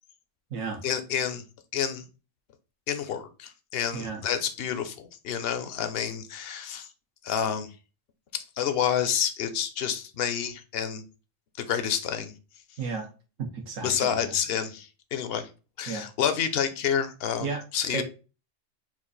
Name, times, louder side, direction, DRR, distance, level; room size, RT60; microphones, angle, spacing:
voice 1, 0.8-1.4 1.7-2.0 2.9-6.9 7.2-7.7 8.3-11.0 11.6-12.3 13.8-15.5 15.8-17.5 17.7-18.0, left 8 dB, 60° left, 9 dB, 0.8 m, -29 dB
voice 2, 12.8-13.1 13.5-14.4 15.9-16.1 17.4-17.6 17.9-18.0, right 4 dB, 85° right, 2 dB, 1.3 m, -33 dB
4.4 x 2.5 x 3.9 m, 0.32 s
omnidirectional pair, 1.3 m